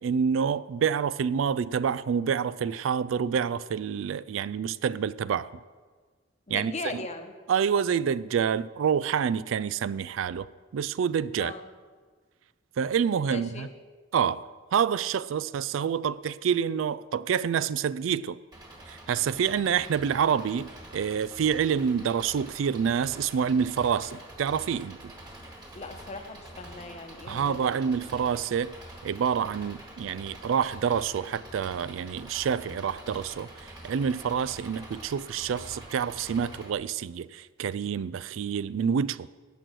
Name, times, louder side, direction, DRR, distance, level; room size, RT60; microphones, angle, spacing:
voice 1, 0.0-5.5 6.5-6.7 7.5-11.5 12.8-13.7 14.1-18.4 18.9-25.0 27.3-28.7 29.0-39.3, right 7 dB, 75° right, 0.3 m, -27 dB
voice 2, 6.5-7.3 11.4-11.7 13.3-13.7 25.7-27.9, left 3 dB, 35° left, 1.0 m, -39 dB
Engine, 18.5-36.7, right 1 dB, 20° right, 1.8 m, -46 dB
18.0 x 6.2 x 6.1 m
head